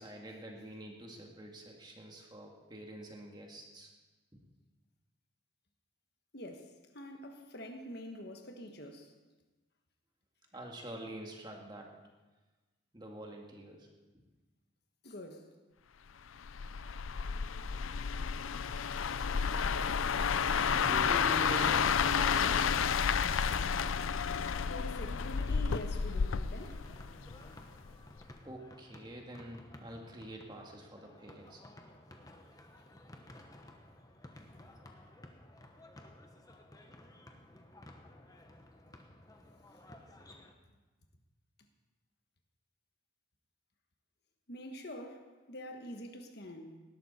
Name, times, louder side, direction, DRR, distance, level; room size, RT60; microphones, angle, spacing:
voice 1, 0.0-3.9 4.3-4.4 10.5-11.9 12.9-13.9 14.1-14.2 20.7-22.7 27.2-27.5 28.4-31.6, right 1 dB, 20° right, 1.8 m, -46 dB
voice 2, 6.3-9.1 15.0-15.5 24.2-26.8 27.4-27.5 44.5-46.8, equal, 50° left, 1.3 m, -46 dB
sound 1, 16.4-27.5 27.9-28.2, left 6 dB, 80° left, 0.5 m, -31 dB
sound 2, 22.5-40.5, left 1 dB, 20° left, 1.0 m, -55 dB
18.5 x 12.5 x 4.3 m
head